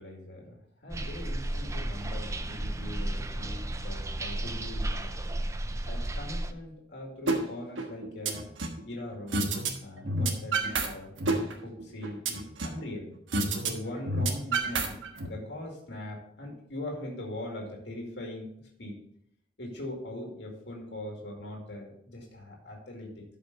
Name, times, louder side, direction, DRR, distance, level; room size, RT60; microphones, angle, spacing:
voice 1, 0.0-5.1 5.9-8.5 8.8-13.1 13.6-18.5 18.8-19.0 19.6-23.2, left 1 dB, 60° left, -1 dB, 2.1 m, -41 dB
sound 1, 0.9-6.5, right 1 dB, 15° right, 0.4 m, -33 dB
sound 2, 7.3-7.4 7.8-8.8 9.3-9.7 10.0-10.9 11.2-12.8 13.3-13.7 14.0-15.3, right 3 dB, 85° right, 1.3 m, -28 dB
12.5 x 5.4 x 4.0 m, 0.71 s
head